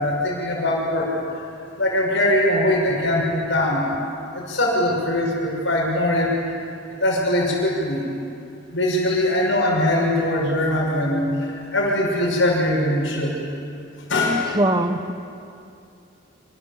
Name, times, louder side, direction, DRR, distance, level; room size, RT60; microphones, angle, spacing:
voice 1, 0.0-1.4 1.8-3.9 4.3-6.3 7.0-8.1 8.7-13.4 14.1-14.4, left 1 dB, 65° left, -2 dB, 6.4 m, -21 dB
voice 2, 14.5-15.1, right 1 dB, 20° right, 8 dB, 1.3 m, -21 dB
28.5 x 26.5 x 7.5 m, 2.6 s
head